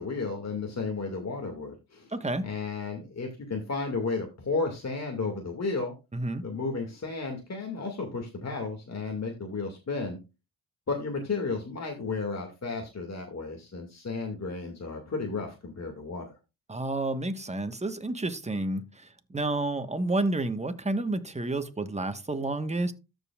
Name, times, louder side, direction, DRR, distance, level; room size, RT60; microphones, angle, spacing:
voice 1, 0.0-2.1 2.4-5.9 6.4-10.2 10.9-16.3, left 4 dB, 45° left, 2.2 m, -33 dB
voice 2, 2.1-2.5 6.1-6.4 16.7-22.9, right 2 dB, 15° right, 1.3 m, -30 dB
14.0 x 5.3 x 2.4 m
supercardioid pair, 50°, 38 cm